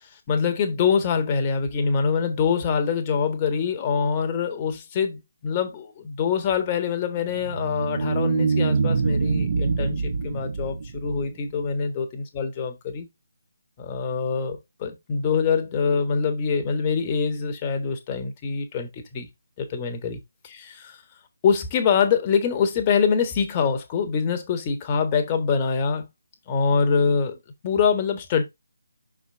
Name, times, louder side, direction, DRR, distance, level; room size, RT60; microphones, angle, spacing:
voice 1, 0.0-13.1 13.8-19.3 19.6-21.0 21.4-26.1 26.5-27.4 27.6-28.4, left 6 dB, 25° left, 1.5 m, -24 dB
sound 1, 7.2-11.7, right 4 dB, 45° right, 1.5 m, -25 dB
6.1 x 4.9 x 3.8 m
figure-of-eight pair, 150°, 0 cm